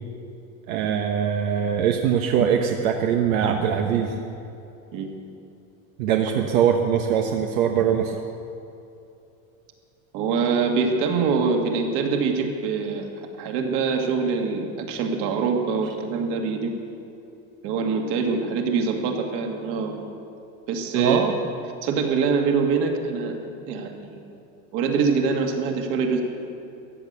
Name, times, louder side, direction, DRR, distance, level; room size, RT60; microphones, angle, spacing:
voice 1, 0.7-4.1 6.0-8.1 20.9-21.4, right 8 dB, 75° right, 3 dB, 1.2 m, -22 dB
voice 2, 10.1-16.8 17.6-20.1 20.7-21.2 21.8-23.3 23.7-24.2 24.7-26.2, right 5 dB, 50° right, 3 dB, 2.2 m, -24 dB
14.5 x 11.0 x 8.2 m, 2.7 s
supercardioid pair, 150°, 41 cm